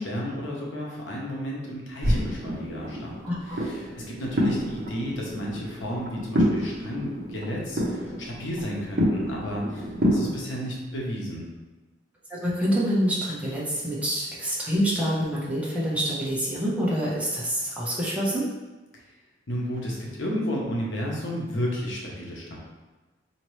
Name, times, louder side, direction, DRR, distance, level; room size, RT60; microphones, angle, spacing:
voice 1, 0.0-11.5 19.5-22.6, equal, 85° left, -3 dB, 0.9 m, -32 dB
sound 1, 2.0-10.4, equal, 55° right, 0.7 m, -28 dB
voice 2, 3.2-3.6 12.3-18.5, equal, 5° right, -7 dB, 1.0 m, -26 dB
4.3 x 2.9 x 3.1 m, 1.2 s
head